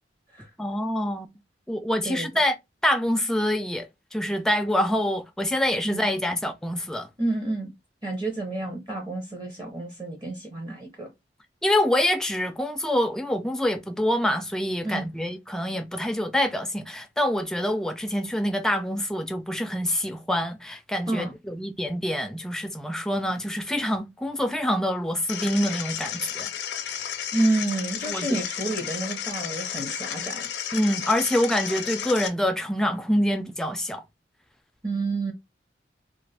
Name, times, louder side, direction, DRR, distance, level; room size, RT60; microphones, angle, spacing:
voice 1, 0.6-1.3 1.7-2.6 2.8-7.1 11.6-26.5 26.9-27.0 28.1-28.4 30.7-34.0, left 1 dB, 5° left, 0.3 m, -26 dB
voice 2, 7.2-7.7 8.0-11.1 14.8-15.1 21.1-21.3 27.3-30.5 34.8-35.3, right 2 dB, 25° right, 0.7 m, -29 dB
sound 1, 25.3-32.3, left 9 dB, 75° left, 0.5 m, -33 dB
2.4 x 2.4 x 3.3 m
head